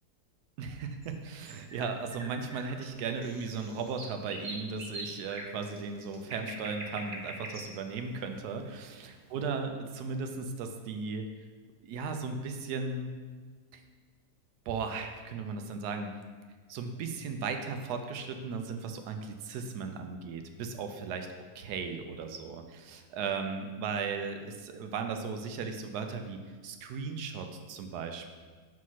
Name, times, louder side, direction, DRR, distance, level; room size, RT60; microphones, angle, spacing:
voice 1, 0.6-11.2 11.8-13.1 13.7-13.8 14.7-16.1 16.7-21.3 21.5-28.3, right 5 dB, 85° right, 6 dB, 1.2 m, -36 dB
sound 1, 1.0-9.2, right 1 dB, 45° right, 0.7 m, -44 dB
4.9 x 3.8 x 5.7 m, 1.5 s
omnidirectional pair, 1.7 m